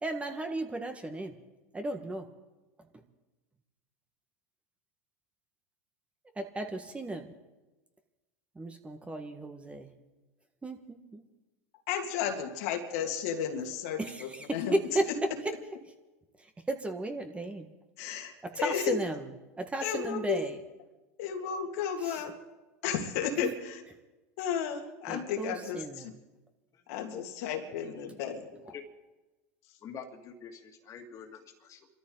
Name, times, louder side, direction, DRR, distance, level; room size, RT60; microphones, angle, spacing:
voice 1, 0.0-1.4 1.7-2.3 6.4-7.3 8.6-9.9 10.6-11.2 14.0-15.0 16.4-17.7 18.6-19.3 19.6-20.6 22.1-22.2 23.4-23.5 25.1-26.1, right 2 dB, 15° right, 5 dB, 1.7 m, -34 dB
voice 2, 11.9-14.8 15.1-15.4 18.0-18.3 18.6-19.0 19.8-20.4 21.2-22.4 22.8-23.8 24.4-26.1 26.9-28.4, left 8 dB, 70° left, 3 dB, 2.3 m, -33 dB
voice 3, 28.2-28.8 29.8-31.9, left 7 dB, 40° left, 4 dB, 2.4 m, -46 dB
26.5 x 13.5 x 4.0 m, 1.1 s
hypercardioid pair, 95°, 8 cm